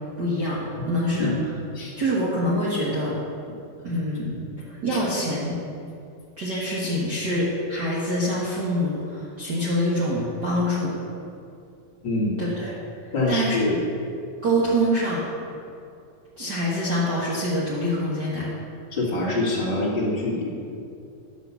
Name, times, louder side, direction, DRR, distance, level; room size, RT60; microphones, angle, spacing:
voice 1, 0.2-1.3 2.0-3.2 3.8-4.3 4.8-5.6 6.4-11.0 12.4-12.7 13.3-13.6 14.4-15.2 16.4-18.5, equal, 75° right, -8 dB, 0.9 m, -25 dB
voice 2, 0.8-1.4 1.7-1.9 4.9-5.0 12.0-12.4 13.1-13.8 18.9-20.5, left 2 dB, 40° left, -5 dB, 1.8 m, -25 dB
10.5 x 6.1 x 7.0 m, 2.5 s
omnidirectional pair, 4.4 m